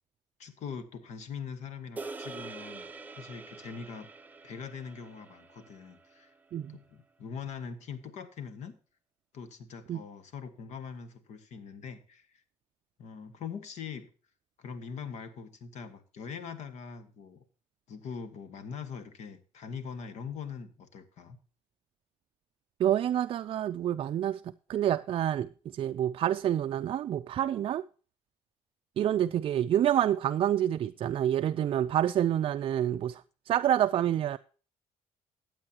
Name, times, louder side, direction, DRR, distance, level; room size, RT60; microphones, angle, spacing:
voice 1, 0.4-2.9 3.2-4.1 4.4-6.3 6.7-8.8 9.3-12.3 13.0-14.1 14.6-17.4 17.9-21.4, left 6 dB, 65° left, 1.5 m, -42 dB
sound 1, 2.0-6.4, right 3 dB, 15° right, 0.7 m, -45 dB
voice 2, 22.8-24.4 24.7-27.8 29.0-34.4, right 11 dB, 50° right, 0.4 m, -28 dB
15.0 x 8.6 x 2.8 m
cardioid pair, 120°, 13 cm